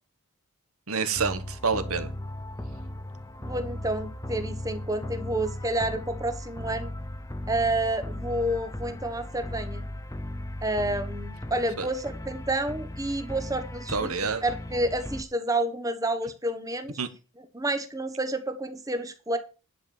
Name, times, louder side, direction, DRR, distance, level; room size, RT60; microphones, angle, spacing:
voice 1, 0.9-2.1 11.8-11.9 13.9-14.4 17.0-17.1, right 5 dB, 85° right, 1.3 m, -28 dB
sound 1, 1.1-15.2, left 1 dB, 15° left, 0.7 m, -37 dB
voice 2, 3.4-6.9 7.5-9.8 10.6-17.0 17.4-19.4, right 1 dB, 15° right, 1.2 m, -29 dB
10.5 x 5.2 x 7.0 m
head